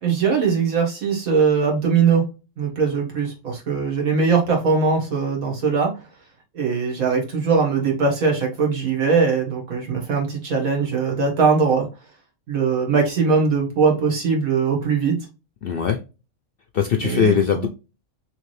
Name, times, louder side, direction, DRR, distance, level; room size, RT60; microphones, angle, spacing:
voice 1, 0.0-2.2 2.6-5.9 6.5-11.9 12.5-15.2 17.0-17.7, right 5 dB, 75° right, 0 dB, 1.8 m, -20 dB
voice 2, 15.6-16.0 16.7-17.7, left 7 dB, 70° left, 4 dB, 0.5 m, -20 dB
3.4 x 3.2 x 3.1 m, 0.30 s
omnidirectional pair, 1.5 m